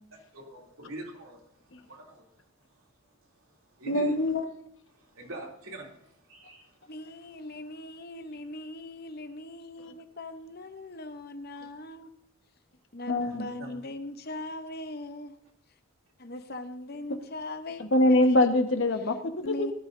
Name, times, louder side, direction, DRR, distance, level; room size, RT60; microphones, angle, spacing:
voice 1, 0.1-2.4 2.7-2.8 3.5-4.1 4.9-6.9 13.2-13.8, right 1 dB, 70° right, 0 dB, 3.0 m, -45 dB
voice 2, 3.9-4.5 9.8-9.9 13.1-13.5 17.8-19.7, left 1 dB, 60° left, 6 dB, 1.4 m, -24 dB
voice 3, 6.9-12.1 12.9-15.4 16.2-17.8 18.1-18.2 19.4-19.7, left 2 dB, 45° left, 9 dB, 0.9 m, -40 dB
17.5 x 12.5 x 2.7 m, 0.71 s
head